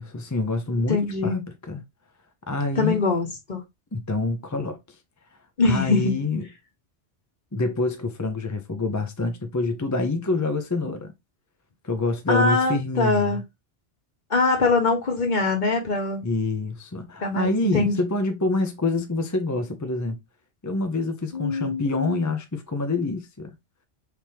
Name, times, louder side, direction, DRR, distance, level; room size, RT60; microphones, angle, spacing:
voice 1, 0.0-1.8 2.5-3.0 3.9-4.8 5.6-6.4 7.5-11.1 11.8-13.4 16.2-20.2 20.6-23.5, left 3 dB, 20° left, 0.5 m, -26 dB
voice 2, 0.9-1.4 2.8-3.6 5.6-6.2 12.3-13.4 14.3-16.3 17.2-18.0 21.3-22.2, left 3 dB, 45° left, 1.3 m, -23 dB
4.6 x 3.5 x 2.8 m
omnidirectional pair, 1.2 m